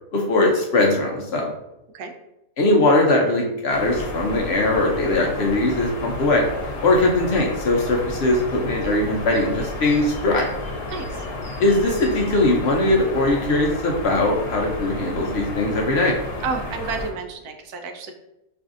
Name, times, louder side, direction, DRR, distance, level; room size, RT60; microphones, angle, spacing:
voice 1, 0.1-1.5 2.6-6.4 6.8-10.4 11.6-16.1, left 2 dB, 60° left, 0 dB, 0.7 m, -20 dB
sound 1, 3.7-17.1, left 2 dB, 80° left, 1.2 m, -32 dB
voice 2, 10.9-11.2 16.4-18.1, right 4 dB, 85° right, 5 dB, 1.1 m, -30 dB
5.4 x 2.5 x 2.4 m, 0.91 s
omnidirectional pair, 1.6 m